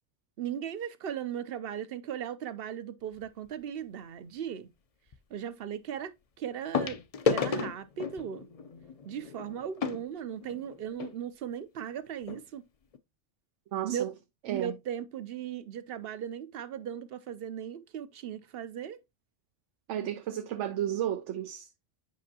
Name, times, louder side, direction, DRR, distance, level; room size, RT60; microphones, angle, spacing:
voice 1, 0.4-4.7 5.3-7.0 7.2-8.5 9.0-12.6 13.8-14.1 14.5-19.0, right 9 dB, 60° right, 0.8 m, -37 dB
sound 1, 3.2-3.5 5.1-5.2 6.7-11.1 11.9-12.0 12.2-12.4 12.9-13.0, left 5 dB, 45° left, 0.5 m, -33 dB
voice 2, 13.7-14.1 14.5-14.8 19.9-21.7, right 11 dB, 85° right, 1.0 m, -33 dB
8.4 x 5.3 x 2.8 m
omnidirectional pair, 1.2 m